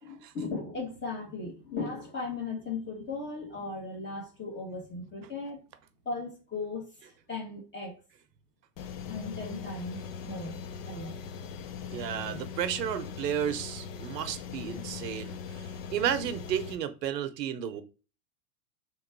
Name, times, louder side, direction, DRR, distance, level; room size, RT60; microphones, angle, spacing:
voice 1, 0.0-5.6 6.0-8.0 9.1-11.2, left 3 dB, 25° left, 1.3 m, -37 dB
sound 1, 8.8-16.8, left 6 dB, 40° left, 0.5 m, -40 dB
voice 2, 11.9-17.8, right 9 dB, 85° right, 0.8 m, -33 dB
3.6 x 3.0 x 4.5 m
hypercardioid pair, 125°, 48 cm